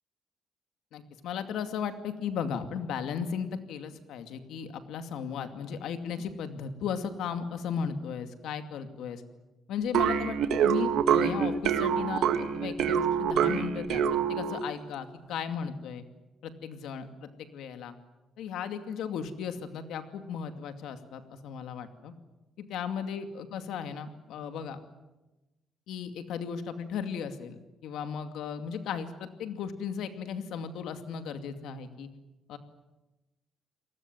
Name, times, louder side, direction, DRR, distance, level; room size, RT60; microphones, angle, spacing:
voice 1, 0.9-9.2 9.7-14.0 14.3-16.0 16.4-17.9 18.4-22.1 22.6-24.8 25.9-32.1 32.5-32.6, left 7 dB, 90° left, 8 dB, 2.5 m, -36 dB
sound 1, 9.9-14.7, right 8 dB, 80° right, 1.7 m, -26 dB
28.0 x 19.5 x 9.3 m, 1.1 s
cardioid pair, 150°, 0 cm